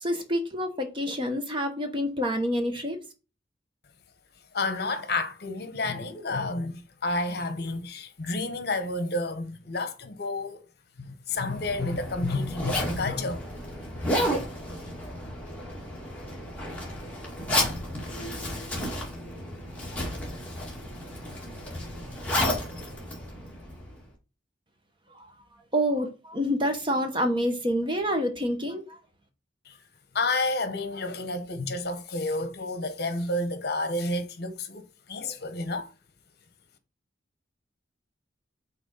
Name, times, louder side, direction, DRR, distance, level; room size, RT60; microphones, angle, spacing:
voice 1, 0.0-3.0 25.1-25.3 25.7-29.0, equal, 25° right, 1.1 m, -27 dB
voice 2, 4.5-10.6 11.0-13.4 29.6-29.8 30.1-35.9, left 2 dB, 55° left, 1.1 m, -30 dB
Zipper (clothing), 11.4-24.0, left 1 dB, 5° left, 2.3 m, -32 dB
6.0 x 4.1 x 5.5 m
head